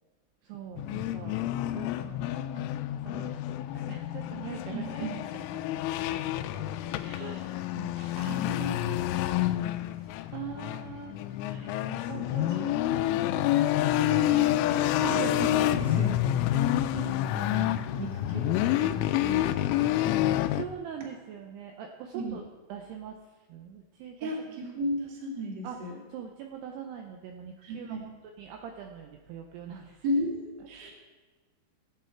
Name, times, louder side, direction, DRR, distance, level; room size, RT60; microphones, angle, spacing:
voice 1, 0.4-1.4 1.7-2.7 3.1-4.9 5.3-5.6 7.2-7.7 10.3-11.2 12.1-15.4 16.9-17.4 20.1-22.4 22.7-23.2 23.5-24.3 25.6-25.8 26.1-28.0 28.4-30.0, right 8 dB, 90° right, 3 dB, 2.3 m, -42 dB
sound 1, 0.8-20.6, left 13 dB, 85° left, 2.9 m, -28 dB
voice 2, 4.7-5.2 7.0-7.4 7.7-9.3 11.5-12.8 14.0-14.6 15.3-16.4 17.3-19.7 22.1-22.4 24.2-26.0 27.6-28.1 30.0-30.9, equal, 40° right, -2 dB, 1.6 m, -36 dB
18.0 x 8.0 x 4.5 m, 1.3 s
omnidirectional pair, 5.8 m